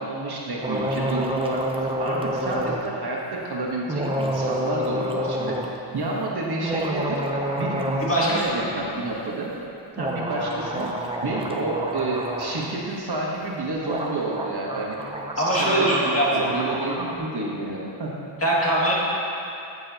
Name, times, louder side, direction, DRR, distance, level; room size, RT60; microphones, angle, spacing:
voice 1, 0.0-7.2 7.6-9.5 10.0-10.9 11.2-15.0 15.3-18.1, right 2 dB, 50° right, -3 dB, 1.3 m, -29 dB
sound 1, 0.6-2.8 3.9-5.7 6.5-8.2 8.4-8.5 10.0-12.6 13.6-13.7 13.8-17.2, right 1 dB, 10° right, 0.6 m, -28 dB
voice 2, 8.0-8.7 15.4-16.4 18.4-18.9, right 1 dB, 30° left, -7 dB, 2.0 m, -22 dB
14.5 x 7.6 x 2.9 m, 2.8 s
wide cardioid pair, 165°, 49 cm